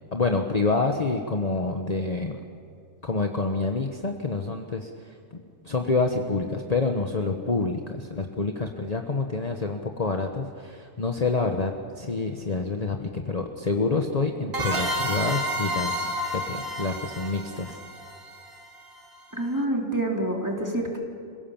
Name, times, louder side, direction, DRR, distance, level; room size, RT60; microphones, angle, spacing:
voice 1, 0.1-2.4 3.0-4.9 5.6-17.8, left 3 dB, 30° left, 3 dB, 1.2 m, -27 dB
sound 1, 14.5-19.0, equal, 45° right, 2.2 m, -30 dB
voice 2, 19.4-21.0, right 1 dB, 15° right, -1 dB, 3.4 m, -27 dB
27.5 x 17.0 x 7.2 m, 2.4 s
omnidirectional pair, 1.4 m